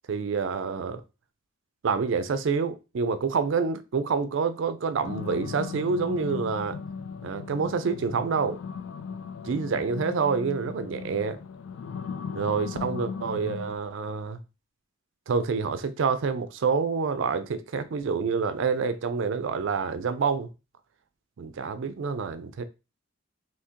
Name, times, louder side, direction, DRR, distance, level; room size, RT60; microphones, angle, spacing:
voice 1, 0.1-1.0 1.8-6.8 7.2-8.6 9.4-11.4 12.3-14.4 15.3-20.5 21.4-22.6, right 5 dB, 60° right, 0.4 m, -27 dB
sound 1, 5.0-13.8, left 6 dB, 65° left, 0.3 m, -37 dB
3.5 x 2.8 x 2.8 m
head